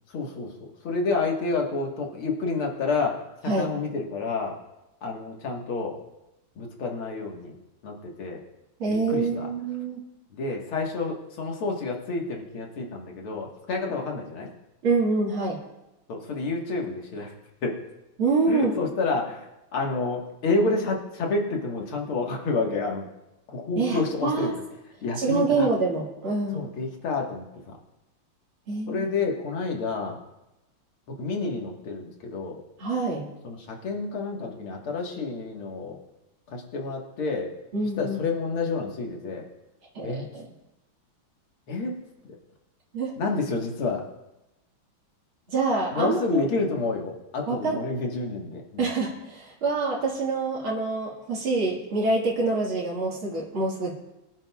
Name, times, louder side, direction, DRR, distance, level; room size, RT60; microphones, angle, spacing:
voice 1, 0.1-0.5 0.8-3.2 3.6-4.6 5.0-6.0 6.6-7.6 7.8-8.4 8.9-9.5 10.3-14.5 16.1-17.3 17.6-17.8 18.5-19.4 19.7-23.1 23.5-24.5 25.0-25.7 26.5-27.7 28.9-30.2 31.2-32.6 33.4-36.0 36.5-37.5 38.0-39.5 40.0-40.3 41.7-42.0 43.2-44.0 45.9-48.9, left 3 dB, 85° left, 0 dB, 2.5 m, -29 dB
voice 2, 8.8-10.0 14.8-15.6 18.2-18.7 23.8-24.5 25.2-26.7 28.7-29.1 32.8-33.3 37.7-38.2 39.9-40.5 42.9-43.2 45.5-46.4 47.5-47.8 48.8-53.9, right 3 dB, 80° right, -4 dB, 2.8 m, -26 dB
22.5 x 10.0 x 2.4 m, 0.95 s
omnidirectional pair, 2.3 m